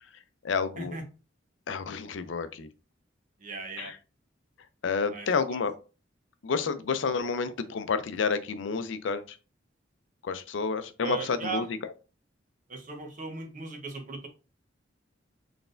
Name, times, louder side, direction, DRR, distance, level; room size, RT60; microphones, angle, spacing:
voice 1, 0.4-1.0 1.7-2.7 3.8-4.0 4.8-5.7 6.4-9.4 10.2-11.6, left 5 dB, 70° left, 0.5 m, -30 dB
voice 2, 3.4-3.9 5.1-5.6 11.0-11.7 12.7-14.3, right 4 dB, 45° right, 0.9 m, -37 dB
4.0 x 3.4 x 2.5 m
head